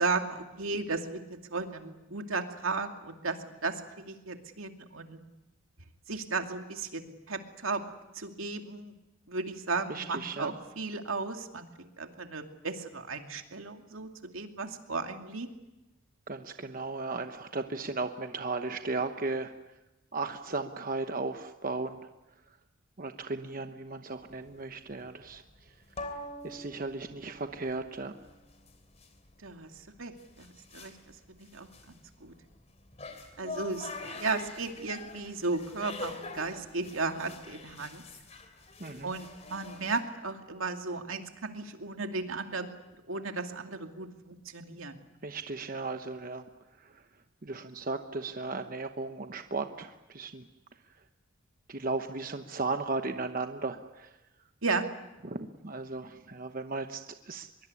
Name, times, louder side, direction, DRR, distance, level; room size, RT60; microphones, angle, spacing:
voice 1, 0.0-5.2 6.1-7.8 8.1-8.9 9.3-11.7 12.0-15.5 29.4-30.9 31.3-31.9 32.2-32.3 33.4-38.0 39.0-42.7 43.1-45.0 54.6-54.9, right 3 dB, 80° right, 5 dB, 2.5 m, -35 dB
voice 2, 9.9-10.5 16.3-19.5 20.1-22.0 23.0-25.4 26.4-28.1 38.8-39.1 45.2-46.4 46.8-46.9 47.4-50.4 51.7-54.1 55.2-57.5, right 3 dB, 45° right, 7 dB, 1.0 m, -35 dB
sound 1, 24.2-40.0, left 2 dB, 30° left, 3.2 m, -45 dB
24.0 x 22.5 x 9.7 m, 1.0 s
head